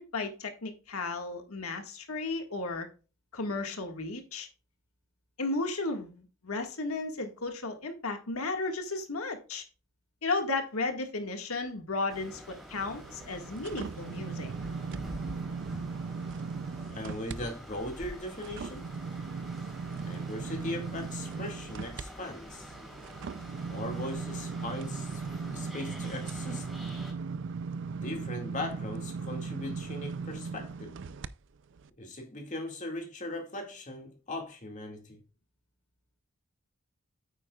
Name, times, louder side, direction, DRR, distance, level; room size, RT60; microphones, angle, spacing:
voice 1, 0.0-2.9 3.3-4.5 5.4-9.6 10.2-14.5, left 3 dB, 85° left, 1.7 m, -34 dB
sound 1, 12.1-27.1, equal, ahead, 3.6 m, -47 dB
sound 2, 12.8-17.4 17.8-31.3 31.8-31.9, right 5 dB, 55° right, 0.4 m, -38 dB
voice 2, 16.9-18.9 20.1-22.7 23.7-26.7 28.0-31.0 32.0-35.2, left 1 dB, 35° left, 2.0 m, -39 dB
9.1 x 8.9 x 2.3 m
head